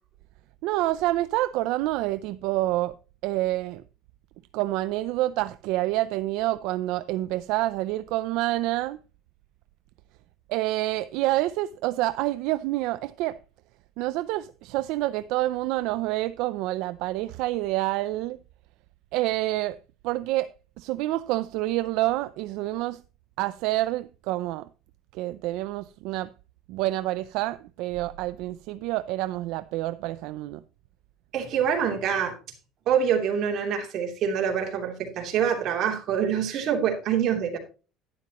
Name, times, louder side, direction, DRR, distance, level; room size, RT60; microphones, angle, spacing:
voice 1, 0.6-3.0 3.2-3.8 4.5-9.0 10.5-13.4 14.0-18.4 19.1-19.8 20.0-23.0 23.4-24.7 25.1-26.3 26.7-30.6, right 16 dB, 70° right, 0.4 m, -27 dB
voice 2, 31.3-32.3 32.9-37.6, right 8 dB, 45° right, 3.1 m, -25 dB
11.5 x 10.5 x 3.0 m
cardioid pair, 155°, 0 cm